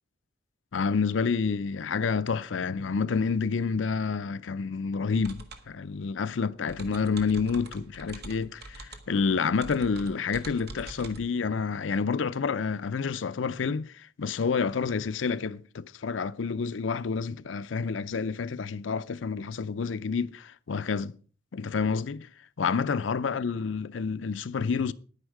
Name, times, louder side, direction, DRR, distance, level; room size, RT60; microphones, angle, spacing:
voice 1, 0.7-21.2 21.5-22.3 22.6-24.9, left 5 dB, 75° left, 0.5 m, -29 dB
sound 1, 5.2-11.2, right 2 dB, 60° right, 1.5 m, -45 dB
10.0 x 10.0 x 4.7 m
head